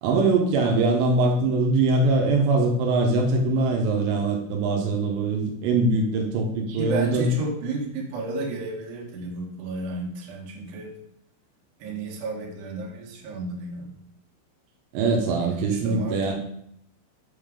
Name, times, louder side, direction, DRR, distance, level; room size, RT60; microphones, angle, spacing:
voice 1, 0.0-7.2 14.9-16.3, right 3 dB, 85° right, 1 dB, 3.2 m, -22 dB
voice 2, 6.7-10.9 11.8-13.9 15.4-16.3, right 3 dB, 70° right, -1 dB, 3.1 m, -32 dB
7.0 x 3.7 x 5.0 m, 0.72 s
omnidirectional pair, 5.5 m